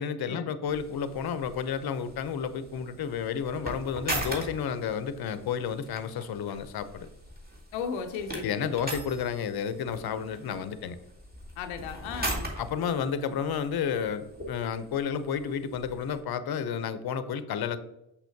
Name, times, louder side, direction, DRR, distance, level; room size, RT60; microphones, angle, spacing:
voice 1, 0.0-7.1 8.4-11.0 12.6-17.8, left 7 dB, 55° left, 13 dB, 0.7 m, -31 dB
sound 1, 0.7-16.2, right 1 dB, 20° right, 2.2 m, -40 dB
voice 2, 7.7-8.7 11.6-12.5, left 6 dB, 90° left, 7 dB, 0.6 m, -35 dB
6.2 x 5.6 x 2.7 m, 0.87 s
hypercardioid pair, 40°, 46 cm